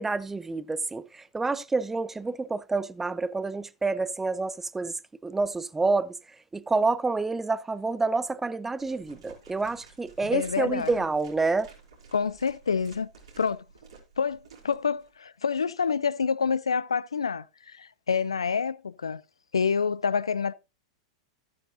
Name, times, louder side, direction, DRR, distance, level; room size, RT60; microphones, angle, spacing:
voice 1, 0.0-6.2 6.5-11.7, right 3 dB, 10° right, 0.5 m, -28 dB
sound 1, 8.8-15.1, right 4 dB, 80° right, 4.8 m, -52 dB
voice 2, 10.3-11.0 12.1-13.1 13.4-13.6 14.2-19.2 19.5-20.5, left 6 dB, 90° left, 0.4 m, -27 dB
13.5 x 9.3 x 2.6 m
hypercardioid pair, 100°, 3 cm